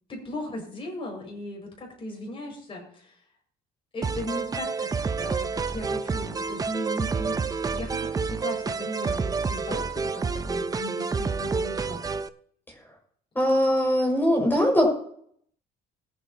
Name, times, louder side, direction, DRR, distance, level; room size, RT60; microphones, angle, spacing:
voice 1, 0.1-3.1 3.9-12.0, left 1 dB, 30° left, 0 dB, 5.6 m, -37 dB
sound 1, 4.0-12.3, right 5 dB, 20° right, 0.6 m, -29 dB
voice 2, 13.3-14.8, equal, 10° left, 1 dB, 5.5 m, -21 dB
21.0 x 8.7 x 2.8 m, 0.64 s
cardioid pair, 110°, 17 cm